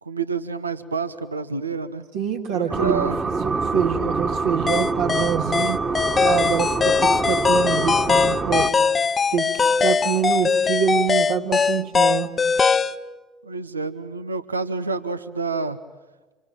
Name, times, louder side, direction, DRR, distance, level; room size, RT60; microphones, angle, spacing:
voice 1, 0.0-2.0 2.5-3.2 13.4-15.8, right 4 dB, 85° right, 12 dB, 0.9 m, -28 dB
voice 2, 2.1-3.1 3.3-5.8 6.2-8.7 9.3-12.3, right 8 dB, 70° right, 0 dB, 2.2 m, -25 dB
sound 1, 2.7-8.7, right 4 dB, 25° right, 1.8 m, -26 dB
sound 2, 4.7-13.0, left 5 dB, 30° left, 1.0 m, -20 dB
27.0 x 24.5 x 9.0 m, 1.2 s
figure-of-eight pair, 60°, 0 cm